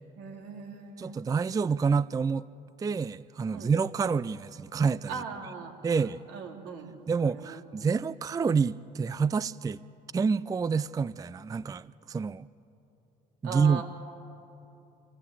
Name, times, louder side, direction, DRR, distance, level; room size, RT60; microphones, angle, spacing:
voice 1, 0.2-1.1 3.5-3.8 5.1-6.0 6.3-8.0 13.4-13.8, right 5 dB, 75° right, 2 dB, 3.1 m, -40 dB
voice 2, 1.0-2.5 2.8-5.2 5.8-6.2 7.1-9.8 10.1-12.5 13.4-13.8, right 5 dB, 20° right, 19 dB, 0.4 m, -28 dB
26.5 x 16.0 x 8.6 m, 2.9 s
supercardioid pair, 70°, 18 cm